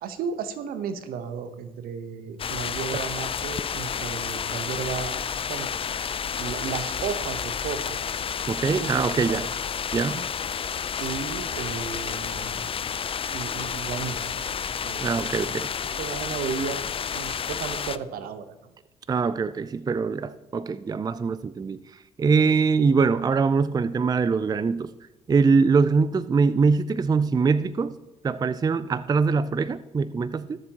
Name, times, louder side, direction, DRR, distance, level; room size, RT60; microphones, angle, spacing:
voice 1, 0.0-5.7 6.4-8.0 8.7-9.4 11.0-12.7 13.3-15.6 16.0-16.8 17.1-18.6, right 6 dB, 65° right, 11 dB, 1.0 m, -34 dB
sound 1, 2.4-18.0, left 7 dB, 35° left, 0.5 m, -30 dB
voice 2, 8.5-9.5 9.9-10.3 15.0-15.7 19.1-24.9 25.3-27.9 28.2-30.6, right 5 dB, 25° right, 16 dB, 0.4 m, -23 dB
20.5 x 7.6 x 2.9 m, 1.0 s
hypercardioid pair, 50°, 16 cm